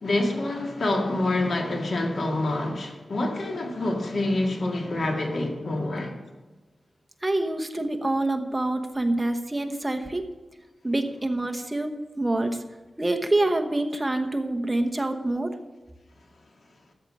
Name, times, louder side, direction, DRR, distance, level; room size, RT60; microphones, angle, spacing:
voice 1, 0.0-6.2, left 2 dB, 65° left, 2.0 m, -27 dB
voice 2, 7.2-10.3 10.8-11.9 12.2-12.6 13.0-15.5, right 2 dB, 15° right, 1.0 m, -26 dB
13.0 x 7.4 x 5.3 m
wide cardioid pair, 110°, 0 cm